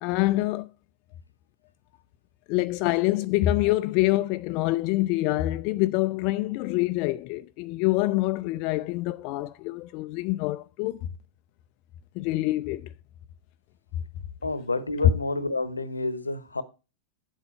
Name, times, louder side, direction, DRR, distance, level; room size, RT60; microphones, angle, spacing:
voice 1, 0.0-0.7 2.5-11.0 12.2-12.8, left 18 dB, 45° left, 0.4 m, -26 dB
voice 2, 14.4-16.6, left 3 dB, 80° left, 0.9 m, -29 dB
9.7 x 7.8 x 4.3 m
figure-of-eight pair, 90°, 0 cm